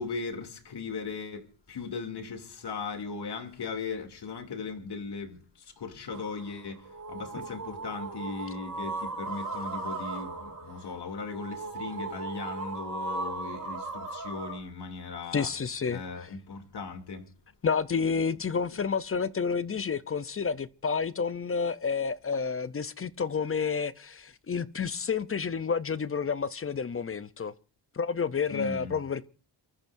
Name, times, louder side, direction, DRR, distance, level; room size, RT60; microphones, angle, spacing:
voice 1, 0.0-6.8 7.1-15.5 15.9-17.3 28.5-29.0, left 4 dB, 60° left, 2.8 m, -38 dB
sound 1, 6.1-14.6, right 3 dB, 45° right, 3.4 m, -37 dB
voice 2, 15.3-16.0 17.6-27.5 27.9-29.3, left 5 dB, 30° left, 0.6 m, -30 dB
29.0 x 14.0 x 2.6 m
cardioid pair, 110°, 46 cm